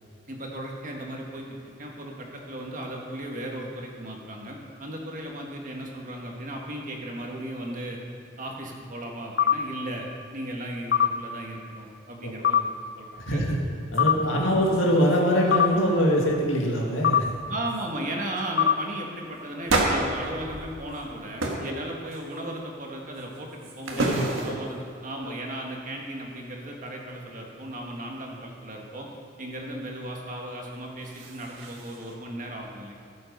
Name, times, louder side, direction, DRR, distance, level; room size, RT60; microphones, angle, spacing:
voice 1, 0.3-8.0 8.4-10.1 10.3-13.4 14.2-14.7 17.5-29.1 29.4-33.0, right 1 dB, 40° right, 0 dB, 1.7 m, -36 dB
sound 1, 9.4-9.6 10.9-11.1 12.4-12.6 14.0-14.2 15.5-15.7 17.0-17.2 18.6-18.8, left 9 dB, 55° left, 0.5 m, -20 dB
voice 2, 13.2-13.6 13.9-17.3 21.6-21.8 23.9-24.6 25.2-25.3, equal, 85° left, -1 dB, 2.1 m, -24 dB
sound 2, 13.9-14.0 14.4-15.2 15.5-15.8 16.2-16.6 17.2-17.3 17.7-17.9 18.3-18.5 19.7-21.0 21.4-21.7 22.1-22.6 23.1-24.8 30.8-32.1, right 2 dB, 85° right, 1.6 m, -31 dB
14.5 x 7.7 x 5.4 m, 2.2 s
head